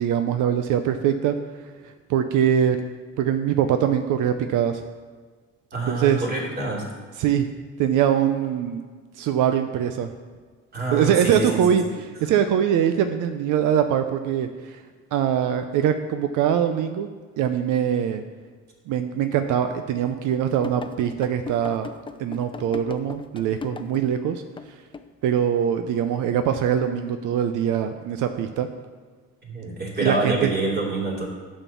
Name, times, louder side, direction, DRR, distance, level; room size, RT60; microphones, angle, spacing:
voice 1, 0.0-1.4 2.1-2.8 3.2-4.8 5.9-6.2 7.2-7.5 7.8-8.8 9.2-10.1 10.9-11.8 12.2-14.8 15.1-17.1 17.4-18.2 18.9-21.9 22.2-24.4 25.2-28.7 30.0-30.5, right 9 dB, 90° right, 8 dB, 0.6 m, -22 dB
voice 2, 5.7-6.8 10.7-11.8 29.4-31.3, right 3 dB, 35° right, -4 dB, 2.9 m, -26 dB
sound 1, 20.6-24.1 24.6-24.7 24.9-25.1, left 4 dB, 15° left, 0.4 m, -37 dB
8.8 x 4.5 x 7.0 m, 1.5 s
cardioid pair, 90°, 30 cm